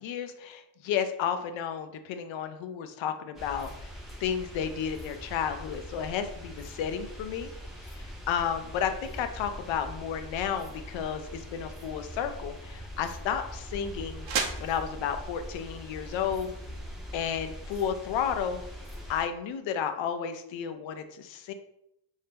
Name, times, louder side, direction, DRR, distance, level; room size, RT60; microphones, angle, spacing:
voice 1, 0.0-3.9 4.2-7.5 7.9-14.3 14.6-16.5 17.1-18.6 19.1-21.5, left 8 dB, 65° left, 8 dB, 0.5 m, -32 dB
sound 1, 3.3-19.2, equal, ahead, 0.6 m, -42 dB
sound 2, 11.6-17.5, right 6 dB, 65° right, 0.8 m, -40 dB
3.2 x 2.7 x 3.3 m, 0.80 s
cardioid pair, 125°, 49 cm